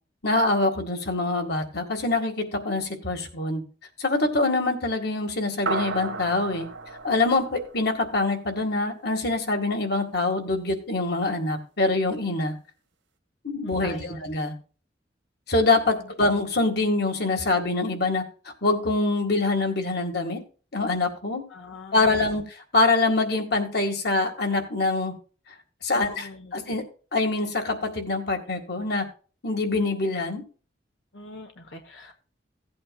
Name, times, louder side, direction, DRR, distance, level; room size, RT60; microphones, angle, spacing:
voice 1, 0.2-3.6 4.0-6.7 7.0-12.5 13.4-14.5 15.5-18.2 18.6-20.4 20.7-21.4 21.9-25.1 25.8-26.8 27.1-29.1 29.4-30.4, left 2 dB, 60° left, 5 dB, 2.0 m, -25 dB
sound 1, 5.7-8.4, right 4 dB, 80° right, 1.5 m, -33 dB
voice 2, 13.6-14.2 21.5-22.2 25.9-26.6 31.1-32.1, left 3 dB, 90° left, 5 dB, 1.2 m, -42 dB
16.5 x 8.6 x 2.4 m, 0.38 s
head